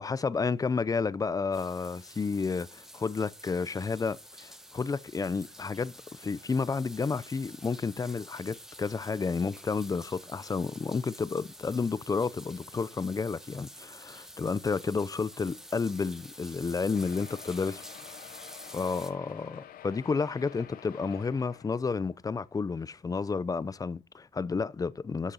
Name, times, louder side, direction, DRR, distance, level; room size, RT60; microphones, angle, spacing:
voice 1, 0.0-18.0 18.7-25.3, left 4 dB, 25° left, 0.6 m, -31 dB
sound 1, 1.5-19.1, equal, 5° right, 1.2 m, -49 dB
sound 2, 16.9-22.4 23.0-23.1 23.4-23.5 23.8-23.9, left 11 dB, 85° left, 1.2 m, -49 dB
12.0 x 6.5 x 5.6 m
cardioid pair, 115°, 15 cm